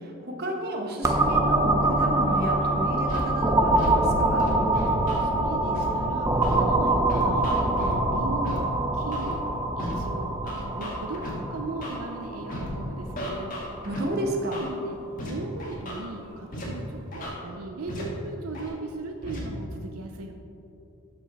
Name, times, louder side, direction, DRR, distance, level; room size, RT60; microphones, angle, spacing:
voice 1, 0.0-4.6 13.8-14.6, equal, 45° right, 2 dB, 1.0 m, -31 dB
sound 1, 0.8-17.1, equal, 65° left, 1.9 m, -45 dB
sound 2, 1.0-14.6, right 2 dB, 15° right, 0.5 m, -25 dB
Scratching (performance technique), 3.0-3.2 3.7-3.9 4.4-5.2 5.7-5.8 6.4-6.6 7.1-7.9 8.4-8.6 9.1-9.3 9.8-9.9 10.5-11.3 11.8-12.0 12.5-12.7 13.2-14.0 14.5-14.7 15.2-15.3 15.6-16.0 16.5-16.6 17.1-17.3 17.9-18.0 18.5-18.7 19.2-19.4, equal, 35° left, 1.6 m, -35 dB
voice 2, 5.2-9.4 9.8-13.6 14.6-15.0 15.3-20.3, right 2 dB, 80° right, 4 dB, 0.6 m, -38 dB
12.5 x 5.6 x 4.1 m, 2.8 s
head